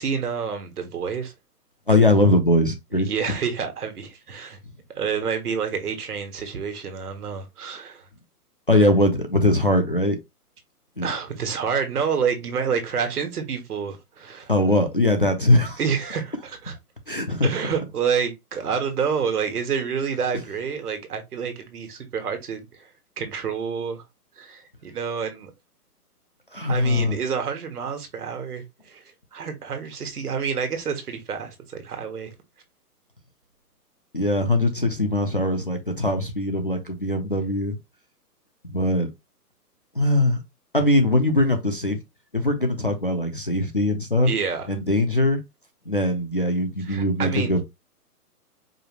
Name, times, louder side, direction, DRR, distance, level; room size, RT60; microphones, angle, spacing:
voice 1, 0.0-1.3 2.9-4.6 4.9-8.0 11.0-14.5 15.8-16.7 17.4-24.0 24.4-25.5 26.7-29.0 29.3-32.3 44.3-44.7 46.8-47.5, right 6 dB, 70° right, 1.5 m, -28 dB
voice 2, 1.9-3.1 8.7-10.2 11.0-11.1 14.5-15.8 17.1-17.5 26.5-27.2 34.1-37.7 38.6-39.1 39.9-40.4 40.7-42.0 42.3-44.3 44.7-45.4 45.9-47.6, left 1 dB, 35° left, 0.4 m, -21 dB
4.8 x 2.5 x 3.0 m
hypercardioid pair, 180°, 47 cm